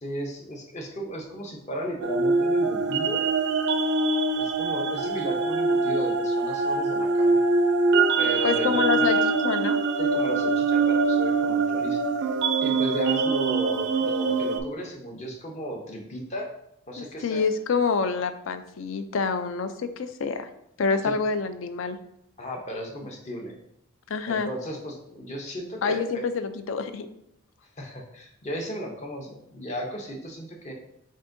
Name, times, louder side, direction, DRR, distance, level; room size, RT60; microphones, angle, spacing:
voice 1, 0.0-3.2 4.4-7.4 8.2-9.2 10.0-12.3 12.6-16.5 16.9-17.4 21.0-21.1 22.4-23.5 24.3-26.2 27.8-30.7, right 1 dB, 35° left, 1 dB, 0.7 m, -35 dB
sound 1, 2.0-14.6, right 3 dB, 55° right, 0.4 m, -23 dB
voice 2, 8.4-9.2 9.4-9.8 17.0-20.5 20.8-22.0 24.1-24.5 25.8-27.1, left 5 dB, 70° left, 10 dB, 0.4 m, -27 dB
7.2 x 2.5 x 2.6 m, 0.78 s
head